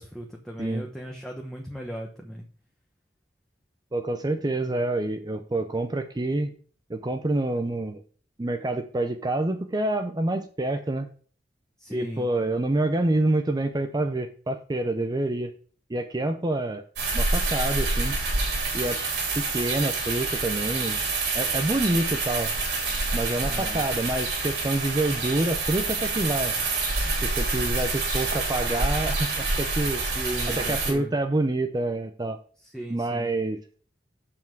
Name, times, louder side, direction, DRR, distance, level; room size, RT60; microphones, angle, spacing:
voice 1, 0.0-2.4 11.8-12.3 23.4-23.8 29.9-31.1 32.6-33.3, equal, 5° left, 0 dB, 1.0 m, -37 dB
voice 2, 3.9-6.5 6.9-8.0 8.4-11.1 11.9-15.5 15.9-16.8 17.1-18.2 18.7-19.0 19.3-21.0 21.3-22.5 23.1-26.5 27.2-30.0 30.6-32.4 32.9-33.6, right 2 dB, 25° right, 7 dB, 0.6 m, -27 dB
sound 1, 17.0-30.9, right 3 dB, 70° right, 3.2 m, -27 dB
7.1 x 5.8 x 4.6 m, 0.43 s
head